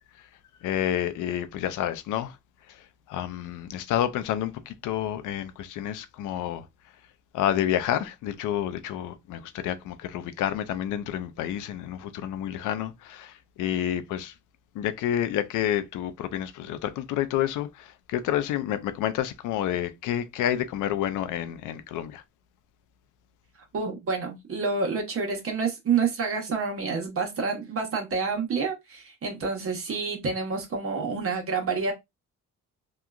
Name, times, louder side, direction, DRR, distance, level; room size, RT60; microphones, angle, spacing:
voice 1, 0.6-2.3 3.1-6.6 7.3-14.3 14.8-22.2, left 11 dB, 85° left, 0.5 m, -29 dB
voice 2, 23.7-31.9, right 5 dB, 45° right, 1.0 m, -28 dB
2.8 x 2.3 x 2.3 m
cardioid pair, 90°, 30 cm